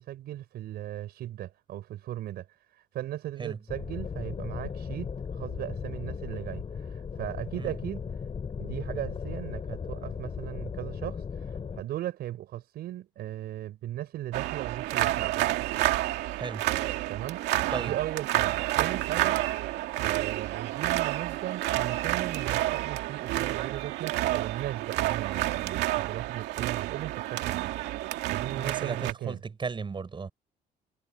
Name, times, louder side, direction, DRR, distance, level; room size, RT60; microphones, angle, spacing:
voice 1, 0.0-2.5 2.9-8.1 8.6-15.4 17.1-19.7 20.0-29.4, right 13 dB, 70° right, 4.6 m, -37 dB
sound 1, 3.7-11.8, left 6 dB, 35° left, 6.5 m, -36 dB
sound 2, 14.3-29.1, right 16 dB, 90° right, 2.3 m, -29 dB
voice 2, 16.3-16.7 17.7-18.0 26.6-26.7 28.5-30.3, right 5 dB, 30° right, 6.3 m, -35 dB
cardioid pair, 110°, 17 cm